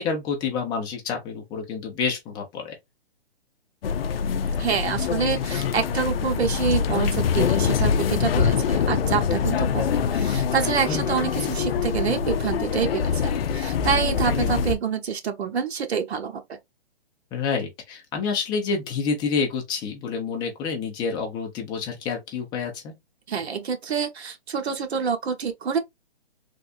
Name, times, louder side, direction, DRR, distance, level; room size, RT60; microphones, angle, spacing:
voice 1, 0.0-2.7 10.9-11.1 17.3-22.9, left 5 dB, 15° left, 0.6 m, -28 dB
sound 1, 3.8-14.7, left 7 dB, 65° left, 0.5 m, -24 dB
voice 2, 4.6-16.6 23.3-25.8, right 6 dB, 80° right, 1.0 m, -27 dB
3.4 x 2.4 x 2.5 m
hypercardioid pair, 150°, 32 cm